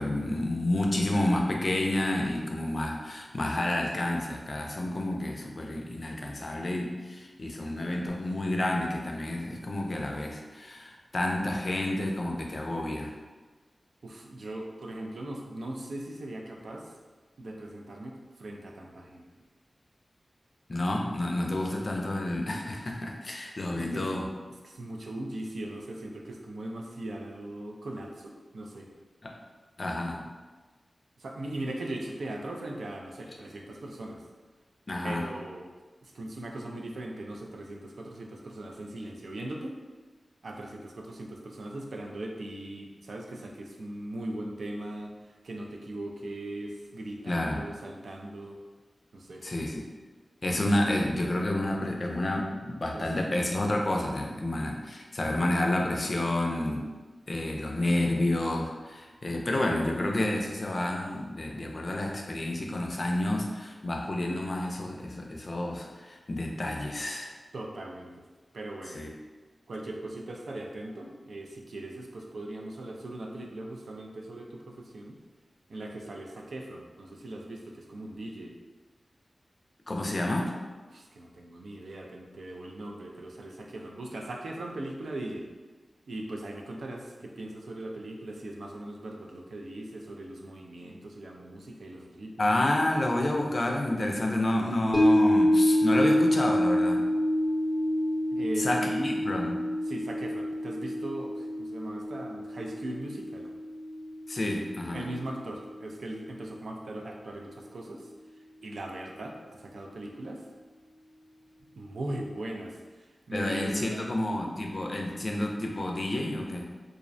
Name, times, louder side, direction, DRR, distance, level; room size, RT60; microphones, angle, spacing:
voice 1, 0.0-13.1 20.7-24.3 29.2-29.3 29.8-30.2 34.9-35.3 47.3-47.6 49.4-49.9 50.4-56.9 57.3-67.3 68.9-69.1 79.9-80.5 92.4-97.1 98.6-99.6 104.3-105.1 113.3-116.7, left 1 dB, 50° left, 1 dB, 0.3 m, -29 dB
voice 2, 14.0-16.9 17.4-19.2 23.8-24.0 24.6-28.9 31.2-34.2 35.0-35.6 36.0-39.7 40.4-45.1 45.4-48.6 49.1-49.4 52.9-53.4 67.5-68.2 68.5-69.0 69.7-75.2 75.7-78.5 80.9-85.5 86.1-92.3 98.3-99.2 99.9-103.5 104.9-108.1 108.6-110.4 111.7-112.8 113.3-114.2, right 1 dB, 85° right, 0 dB, 0.3 m, -39 dB
sound 1, 94.9-105.3 105.7-105.8, left 1 dB, 5° left, 0.5 m, -27 dB
2.4 x 2.0 x 2.5 m, 1.3 s
wide cardioid pair, 75°, 0 cm